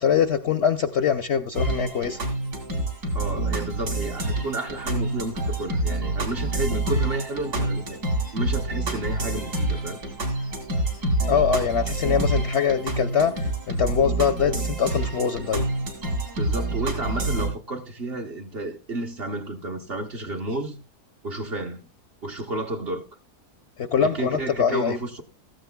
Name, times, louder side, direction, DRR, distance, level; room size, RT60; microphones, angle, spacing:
voice 1, 0.0-2.2 11.3-15.6 23.8-25.0, left 7 dB, 60° left, 0.7 m, -23 dB
sound 1, 1.5-17.5, right 2 dB, 75° right, 3.2 m, -27 dB
voice 2, 3.1-8.0 8.3-10.0 16.4-20.8 21.2-21.9 22.2-23.0 24.0-25.2, right 2 dB, 45° right, 1.0 m, -31 dB
15.5 x 13.5 x 2.2 m
omnidirectional pair, 1.7 m